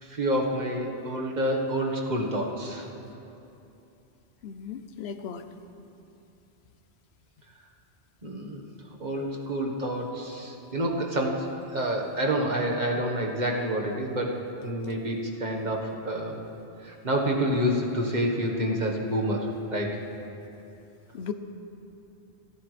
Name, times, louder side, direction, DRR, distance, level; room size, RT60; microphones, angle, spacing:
voice 1, 0.0-2.9 8.2-8.6 9.0-11.5 11.7-14.3 14.6-16.4 16.8-19.9, equal, 45° right, 0 dB, 1.6 m, -28 dB
voice 2, 4.4-5.4 21.1-21.3, left 7 dB, 75° left, 9 dB, 0.9 m, -36 dB
28.5 x 10.0 x 3.4 m, 2.8 s
omnidirectional pair, 1.1 m